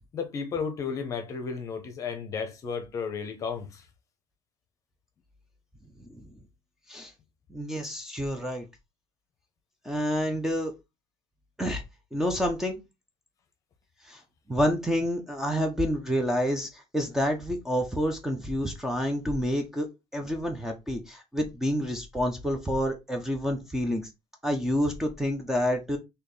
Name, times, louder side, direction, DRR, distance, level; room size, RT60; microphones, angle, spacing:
voice 1, 0.1-3.8, left 6 dB, 35° left, 0.7 m, -33 dB
voice 2, 6.0-6.3 6.9-7.1 7.5-8.7 9.8-10.7 11.6-11.8 12.1-12.8 14.0-14.2 14.5-24.1 24.4-26.0, equal, 5° right, 0.5 m, -28 dB
4.1 x 2.8 x 3.2 m
cardioid pair, 165°, 9 cm